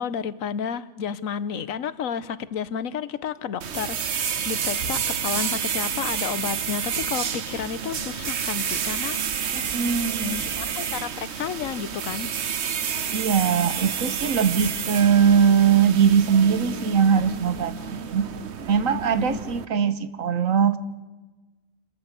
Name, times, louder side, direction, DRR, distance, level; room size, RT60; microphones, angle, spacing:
voice 1, 0.0-9.2 10.2-12.3 19.1-19.4, left 7 dB, 85° left, 16 dB, 1.3 m, -31 dB
sound 1, 3.6-19.7, right 7 dB, 60° right, 1.2 m, -29 dB
voice 2, 9.5-10.4 13.1-18.3 18.7-20.8, right 7 dB, 85° right, 13 dB, 1.5 m, -21 dB
27.5 x 14.0 x 8.3 m, 1.2 s
omnidirectional pair, 1.4 m